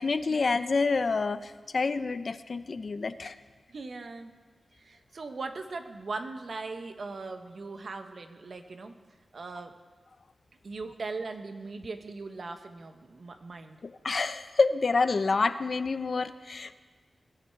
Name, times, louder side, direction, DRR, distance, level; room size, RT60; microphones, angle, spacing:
voice 1, 0.0-3.3 13.8-16.8, left 4 dB, 55° left, 12 dB, 0.6 m, -28 dB
voice 2, 3.7-4.3 4.7-8.9 9.3-9.7 10.6-13.8, right 3 dB, 60° right, 6 dB, 1.2 m, -39 dB
21.0 x 11.5 x 4.6 m, 1.4 s
wide cardioid pair, 100°, 0 cm